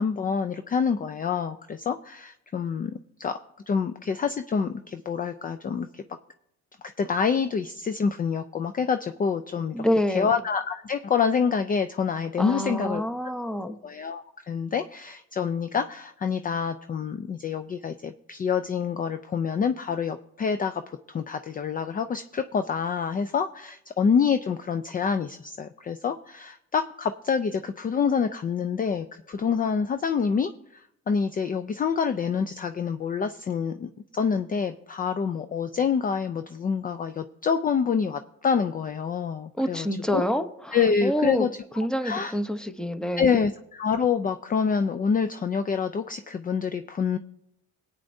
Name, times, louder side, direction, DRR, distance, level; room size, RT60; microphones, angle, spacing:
voice 1, 0.0-2.9 3.2-3.4 3.7-6.0 7.0-13.0 13.6-39.9 40.1-40.2 40.7-41.5 42.0-42.4 43.2-47.2, left 6 dB, 30° left, 10 dB, 0.4 m, -27 dB
voice 2, 9.7-10.3 12.4-13.8 39.6-41.5 41.8-43.4, equal, ahead, 9 dB, 0.8 m, -27 dB
19.0 x 8.7 x 2.7 m, 0.80 s
cardioid pair, 90°, 30 cm